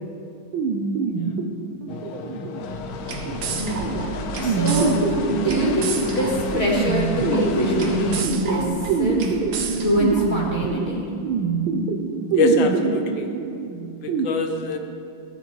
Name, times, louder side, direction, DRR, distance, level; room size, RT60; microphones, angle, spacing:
sound 1, 0.5-14.3, right 5 dB, 80° right, 1.4 m, -26 dB
sound 2, 1.9-8.2, left 6 dB, 90° left, 1.5 m, -32 dB
sound 3, 2.6-10.8, right 5 dB, 65° right, 1.1 m, -33 dB
voice 1, 3.5-3.9 4.4-9.2 9.7-11.0, equal, 35° left, -5 dB, 1.5 m, -24 dB
voice 2, 12.3-13.3 14.0-14.8, left 3 dB, 70° left, 5 dB, 1.4 m, -23 dB
15.0 x 8.0 x 3.1 m, 2.5 s
omnidirectional pair, 2.3 m